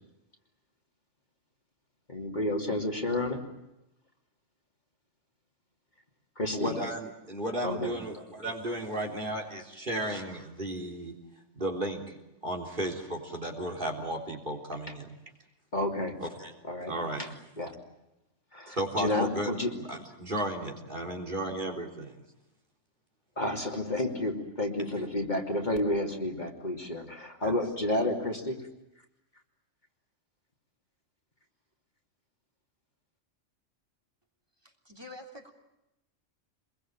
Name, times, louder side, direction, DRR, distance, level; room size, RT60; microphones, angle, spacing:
voice 1, 2.1-3.4 6.4-6.7 7.6-7.9 15.7-16.2 16.6-16.9 17.2-17.3 17.6-17.7 18.5-19.7 23.4-28.6, left 1 dB, 35° left, 2 dB, 3.3 m, -30 dB
voice 2, 6.5-11.1 11.5-12.1 12.4-15.1 16.2-16.5 16.9-17.3 18.7-19.5 19.9-22.1 27.4-27.5, right 1 dB, 40° right, 2 dB, 3.9 m, -34 dB
voice 3, 34.6-35.5, left 1 dB, 20° right, 4 dB, 3.5 m, -47 dB
26.5 x 22.0 x 8.9 m, 0.91 s
omnidirectional pair, 1.3 m